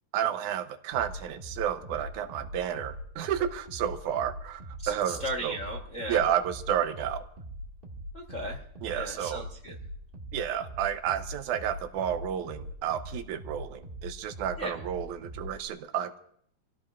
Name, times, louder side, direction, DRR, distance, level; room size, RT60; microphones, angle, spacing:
voice 1, 0.1-5.6 6.1-7.2 8.8-9.5 10.3-16.2, right 9 dB, 80° right, 9 dB, 2.1 m, -31 dB
sound 1, 0.9-15.7, equal, 25° right, 1.3 m, -43 dB
voice 2, 4.8-6.2 8.1-8.6 8.9-9.7 14.6-14.7, right 1 dB, 70° left, 0 dB, 0.7 m, -36 dB
27.5 x 15.5 x 2.4 m, 0.67 s
omnidirectional pair, 3.7 m